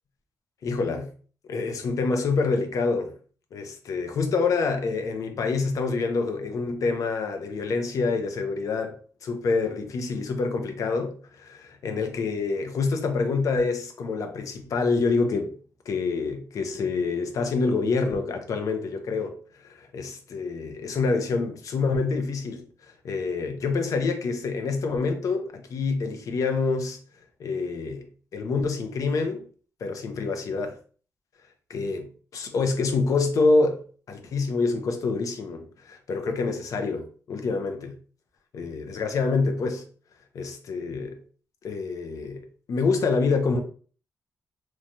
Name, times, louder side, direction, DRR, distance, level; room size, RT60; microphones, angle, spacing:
voice 1, 0.6-1.1 1.5-3.1 3.5-15.5 15.9-22.6 23.0-27.0 27.4-29.5 29.8-30.8 31.7-38.0 38.5-39.8 40.3-41.2 41.6-43.6, left 4 dB, 75° left, 0.5 m, -27 dB
3.1 x 2.2 x 2.6 m
wide cardioid pair, 125°, 6 cm